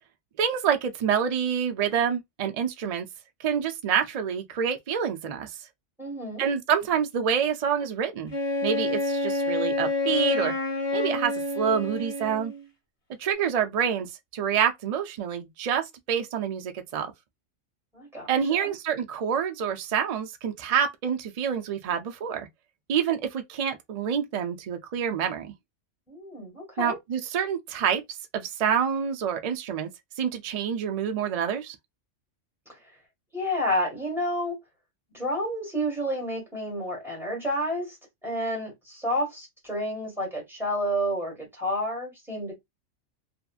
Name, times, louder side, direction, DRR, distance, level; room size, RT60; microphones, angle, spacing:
voice 1, 0.4-3.1 3.4-5.5 6.4-8.3 8.6-10.6 10.9-12.5 13.2-17.1 18.3-22.5 22.9-25.5 26.8-28.0 28.3-29.9 30.2-31.8, right 8 dB, 65° right, 0.3 m, -27 dB
voice 2, 6.0-6.5 17.9-18.7 26.1-27.0 33.3-34.6 35.1-38.0 38.2-42.6, equal, ahead, 1.5 m, -30 dB
Wind instrument woodwind instrument, 8.3-12.7, left 3 dB, 40° left, 1.3 m, -28 dB
2.7 x 2.5 x 2.3 m
omnidirectional pair, 1.3 m